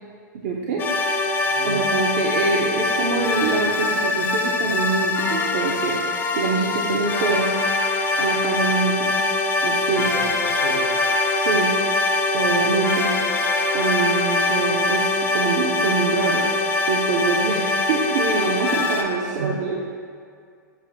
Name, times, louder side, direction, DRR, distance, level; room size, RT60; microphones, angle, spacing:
voice 1, 0.3-0.8 1.6-6.0 6.3-7.5 8.2-9.1 9.6-10.1 11.3-11.7 12.3-13.1 13.7-16.4 16.9-19.8, right 4 dB, 55° right, -3 dB, 0.4 m, -25 dB
sound 1, 0.8-19.0, left 2 dB, 20° left, 0.3 m, -23 dB
voice 2, 1.4-1.8 9.8-11.0 19.2-19.6, right 4 dB, 70° right, -1 dB, 0.8 m, -34 dB
6.7 x 2.5 x 2.5 m, 2.2 s
hypercardioid pair, 105°, 10 cm